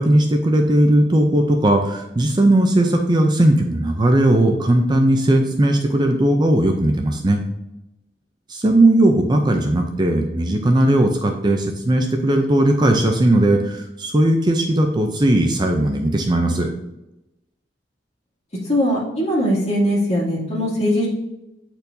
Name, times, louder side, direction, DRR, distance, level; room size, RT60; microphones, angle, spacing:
voice 1, 0.0-7.4 8.5-16.7, right 1 dB, 25° right, 3 dB, 0.5 m, -17 dB
voice 2, 18.6-21.1, equal, 35° left, -6 dB, 2.4 m, -20 dB
8.7 x 4.4 x 2.7 m, 0.91 s
head